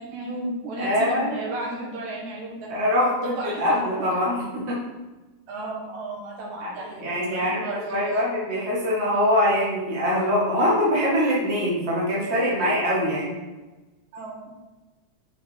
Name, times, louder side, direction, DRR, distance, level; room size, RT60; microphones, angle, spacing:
voice 1, 0.0-2.7 3.2-4.2 5.5-8.2 12.6-12.7 14.1-14.5, right 2 dB, 80° right, -3 dB, 2.8 m, -34 dB
voice 2, 0.8-1.3 2.7-4.8 6.6-6.7 7.0-13.4, equal, 25° right, -6 dB, 1.8 m, -23 dB
5.9 x 5.4 x 4.5 m, 1.2 s
omnidirectional pair, 3.3 m